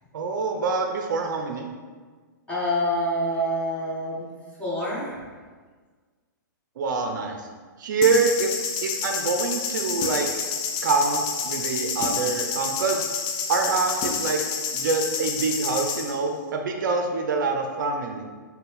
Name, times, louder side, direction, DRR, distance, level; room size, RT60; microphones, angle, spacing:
voice 1, 0.1-1.7 6.8-7.5 7.8-8.5 8.8-10.3 10.8-13.1 13.5-14.4 14.7-18.2, right 4 dB, 65° right, 3 dB, 0.4 m, -25 dB
voice 2, 2.5-4.3 4.6-5.2, equal, 10° left, -9 dB, 1.4 m, -26 dB
sound 1, 8.0-16.2, left 6 dB, 35° left, 0.4 m, -29 dB
4.2 x 2.1 x 3.4 m, 1.5 s
hypercardioid pair, 125°, 11 cm